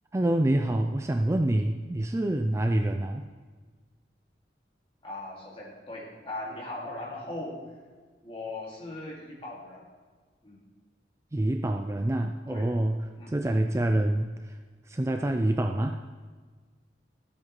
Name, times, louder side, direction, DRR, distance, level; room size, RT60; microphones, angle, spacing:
voice 1, 0.1-3.2 11.3-14.6 14.9-16.0, right 1 dB, 15° right, 5 dB, 0.4 m, -26 dB
voice 2, 5.0-7.6 8.2-9.9 10.4-10.6 12.5-12.7 13.2-13.8, left 2 dB, 30° left, -4 dB, 2.5 m, -39 dB
14.0 x 8.6 x 3.2 m, 1.5 s
head